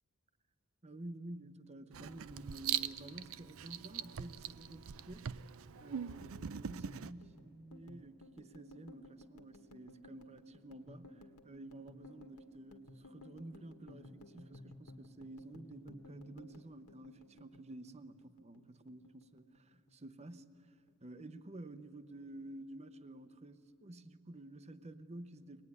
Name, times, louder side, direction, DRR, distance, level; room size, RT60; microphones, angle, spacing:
voice 1, 0.8-5.4 5.8-20.5 21.0-25.6, right 1 dB, 30° right, 0.8 m, -51 dB
Writing, 1.9-7.1, right 9 dB, 65° right, 0.5 m, -42 dB
sound 1, 6.0-18.6 18.9-19.9 20.2-20.6 20.9-21.6, left 2 dB, 90° left, 1.7 m, -57 dB
23.5 x 19.5 x 9.7 m
head